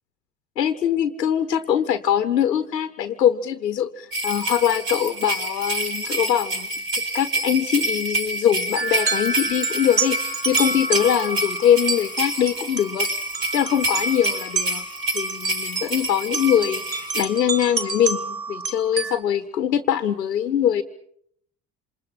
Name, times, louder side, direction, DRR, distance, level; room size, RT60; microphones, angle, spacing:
voice 1, 0.6-6.7 7.1-13.1 13.5-14.8 15.1-20.8, left 9 dB, 80° left, 12 dB, 1.0 m, -22 dB
sound 1, 4.1-17.2, right 1 dB, 45° right, 7.4 m, -28 dB
sound 2, 8.8-19.2, right 4 dB, 90° right, 1.4 m, -29 dB
27.5 x 26.5 x 5.8 m, 0.68 s
figure-of-eight pair, 55°, 49 cm